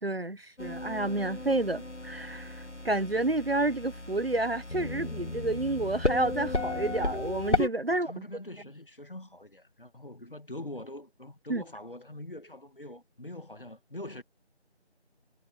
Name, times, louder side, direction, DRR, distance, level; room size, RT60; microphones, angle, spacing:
voice 1, 0.0-8.2 11.5-11.6, right 2 dB, 60° right, 1.3 m, -30 dB
sound 1, 0.6-7.7, left 2 dB, 90° left, 2.1 m, -34 dB
voice 2, 7.9-14.2, left 1 dB, 50° left, 1.7 m, -43 dB
figure-of-eight pair, 170°, 34 cm